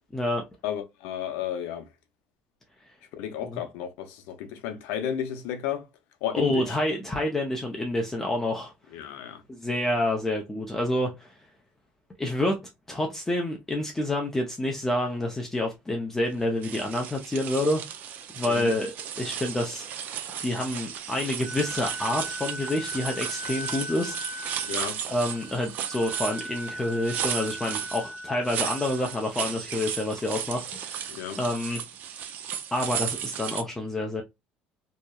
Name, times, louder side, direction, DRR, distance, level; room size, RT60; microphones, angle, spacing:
voice 1, 0.1-0.4 3.5-3.6 6.3-8.7 9.5-11.3 12.2-12.6 12.9-17.8 18.4-19.9 20.4-24.2 24.5-24.7 25.1-31.8 32.7-34.2, left 1 dB, 10° left, 0.5 m, -28 dB
voice 2, 0.6-1.9 3.2-5.9 6.2-6.8 8.9-9.4 18.5-18.7 24.7-25.0 31.1-31.4, left 9 dB, 80° left, 0.6 m, -32 dB
sound 1, 16.6-33.6, right 9 dB, 55° right, 0.4 m, -35 dB
Wind instrument woodwind instrument, 21.4-29.2, left 1 dB, 90° right, 1.1 m, -40 dB
2.8 x 2.1 x 2.3 m
cardioid pair, 120°, 4 cm